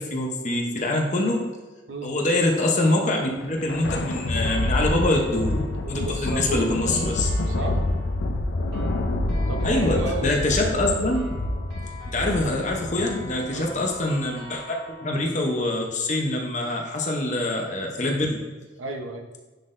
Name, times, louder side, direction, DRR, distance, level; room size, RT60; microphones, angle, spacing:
voice 1, 0.0-1.4 2.0-5.6 5.9-7.3 9.6-11.3 12.1-18.4, left 2 dB, 40° left, 1 dB, 0.8 m, -25 dB
Thunder, 3.3-14.0, left 1 dB, 80° left, 0.6 m, -27 dB
sound 1, 3.9-15.3, left 2 dB, 65° right, 1.9 m, -45 dB
voice 2, 5.8-7.8 9.5-10.4 13.5-13.8 18.8-19.3, right 2 dB, 85° right, 3 dB, 0.8 m, -33 dB
10.0 x 3.9 x 2.6 m, 1.3 s
head